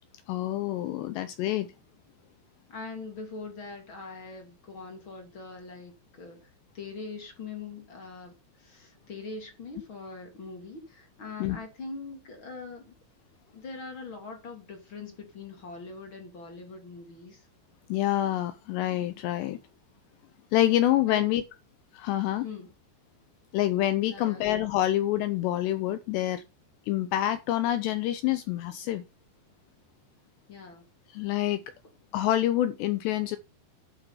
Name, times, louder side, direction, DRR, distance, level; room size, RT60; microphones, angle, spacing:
voice 1, 0.3-1.7 11.4-11.6 17.9-19.6 20.5-21.4 21.9-22.5 23.5-26.4 26.9-29.0 31.1-31.6 32.1-33.4, left 13 dB, 80° left, 2.5 m, -27 dB
voice 2, 2.7-12.9 13.5-17.5 21.1-21.3 22.4-22.7 24.1-24.4 30.5-30.8, left 4 dB, 40° left, 2.1 m, -42 dB
11.5 x 5.8 x 5.5 m
omnidirectional pair, 5.5 m